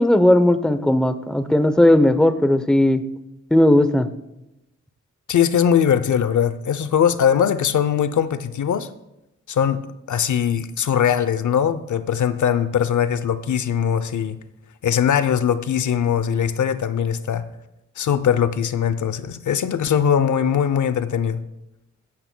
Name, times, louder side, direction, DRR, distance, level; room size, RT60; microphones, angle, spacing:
voice 1, 0.0-3.0 3.5-4.1, left 1 dB, 5° left, 0.7 m, -16 dB
voice 2, 5.3-8.9 9.5-9.8 10.1-14.4 14.8-17.4 18.0-21.4, left 8 dB, 90° left, 0.6 m, -20 dB
15.0 x 15.0 x 2.2 m
wide cardioid pair, 110°, 29 cm